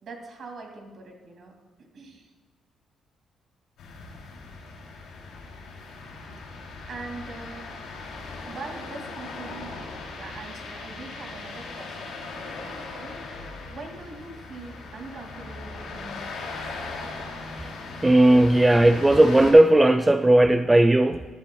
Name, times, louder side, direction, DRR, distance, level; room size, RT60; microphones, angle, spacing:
voice 1, 0.0-1.5 1.8-2.3 6.5-7.7 8.5-9.9 10.1-16.6, right 3 dB, 55° right, 2 dB, 2.3 m, -42 dB
sound 1, 3.8-19.5, left 3 dB, 85° left, 2.9 m, -39 dB
voice 2, 18.0-21.3, right 1 dB, 15° right, 9 dB, 0.3 m, -17 dB
14.5 x 11.5 x 2.3 m, 1.5 s
cardioid pair, 90°, 0 cm